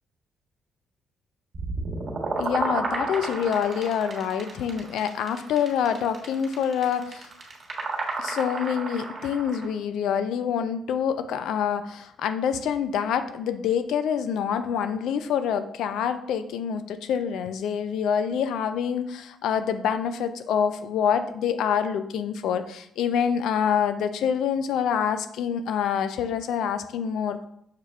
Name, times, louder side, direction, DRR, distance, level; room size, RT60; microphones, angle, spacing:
sound 1, 1.5-9.7, right 3 dB, 45° right, 1.2 m, -32 dB
voice 1, 2.4-7.3 8.2-27.4, left 8 dB, 80° left, 10 dB, 0.3 m, -26 dB
6.5 x 2.3 x 3.2 m, 0.72 s
cardioid pair, 90°, 0 cm